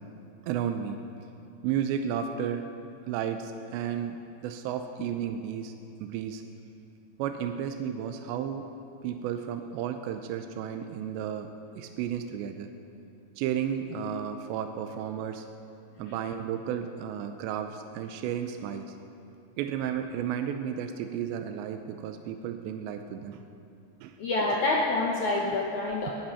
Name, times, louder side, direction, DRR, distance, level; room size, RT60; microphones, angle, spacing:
voice 1, 0.5-1.0 1.6-2.7 3.1-5.7 6.0-6.4 7.2-8.7 9.0-12.7 13.4-15.5 16.0-18.9 19.6-23.4 24.0-24.2, right 8 dB, 85° right, 6 dB, 2.9 m, -33 dB
voice 2, 24.2-26.1, left 2 dB, 75° left, -1 dB, 1.7 m, -27 dB
20.0 x 12.0 x 5.7 m, 2.6 s
omnidirectional pair, 5.1 m